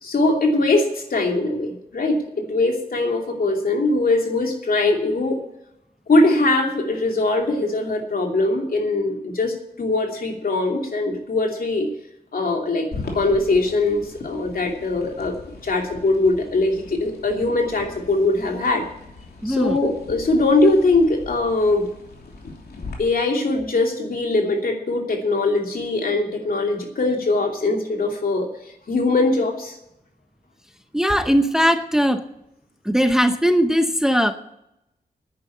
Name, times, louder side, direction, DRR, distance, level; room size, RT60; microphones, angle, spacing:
voice 1, 0.0-5.4 6.1-11.9 12.3-12.9 13.1-15.3 15.6-18.9 19.4-21.8 23.0-28.5 28.9-29.8, left 2 dB, 65° left, 2 dB, 2.8 m, -21 dB
sound 1, 12.9-22.9, left 3 dB, 80° left, 3.0 m, -39 dB
voice 2, 19.4-19.8 30.9-32.2 32.8-34.3, equal, 5° right, 8 dB, 0.7 m, -19 dB
10.5 x 9.4 x 8.5 m, 0.82 s
wide cardioid pair, 135°, 16 cm